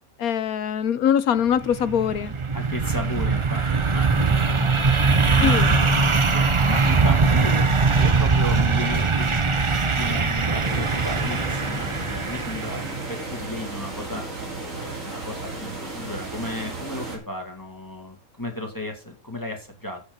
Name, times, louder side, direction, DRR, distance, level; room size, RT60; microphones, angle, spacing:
voice 1, 0.2-2.3 5.4-5.7, left 9 dB, 85° left, 1.3 m, -22 dB
sound 1, 1.5-13.2, right 4 dB, 30° right, 0.6 m, -21 dB
voice 2, 2.5-3.6 3.9-4.8 5.3-9.5 9.9-14.2 14.7-20.0, left 1 dB, 15° left, 2.4 m, -34 dB
sound 2, 10.6-17.2, right 3 dB, 65° right, 3.8 m, -34 dB
8.8 x 8.2 x 5.5 m
omnidirectional pair, 1.5 m